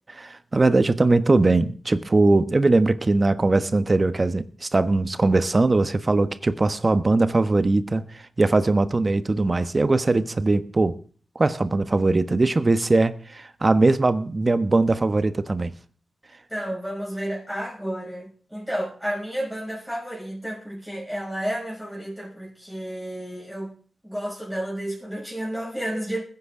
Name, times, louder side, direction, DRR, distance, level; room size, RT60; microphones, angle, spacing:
voice 1, 0.2-8.0 8.4-11.0 11.3-15.7, right 2 dB, 35° right, 1.1 m, -20 dB
voice 2, 16.5-23.7 24.0-26.2, equal, ahead, 6.3 m, -31 dB
21.0 x 10.0 x 3.8 m
cardioid pair, 65°, 0 cm